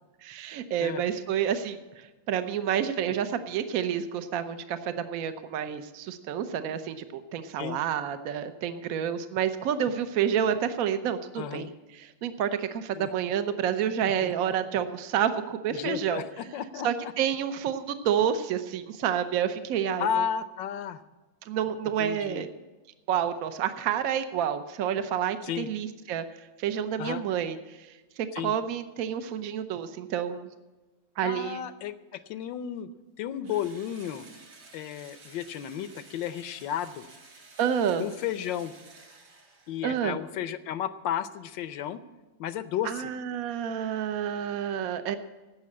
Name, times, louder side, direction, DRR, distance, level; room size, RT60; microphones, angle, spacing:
voice 1, 0.2-11.7 11.9-16.2 16.8-20.3 21.5-22.5 23.1-26.2 26.6-27.6 28.2-30.5 31.2-31.6 37.6-38.0 39.8-40.2 42.8-45.2, right 9 dB, 60° right, 10 dB, 1.1 m, -29 dB
voice 2, 11.4-11.7 13.0-13.1 14.0-14.5 15.7-17.1 20.0-21.0 22.0-22.5 25.4-25.7 27.0-27.2 28.3-28.5 31.2-31.9 32.3-32.9 33.2-34.2 34.7-37.1 38.0-38.7 39.7-42.0 42.4-43.1, left 9 dB, 75° left, 13 dB, 1.4 m, -33 dB
Engine / Drill, 33.4-40.0, right 3 dB, 90° right, 2.9 m, -52 dB
16.5 x 6.2 x 8.4 m, 1.1 s
omnidirectional pair, 2.1 m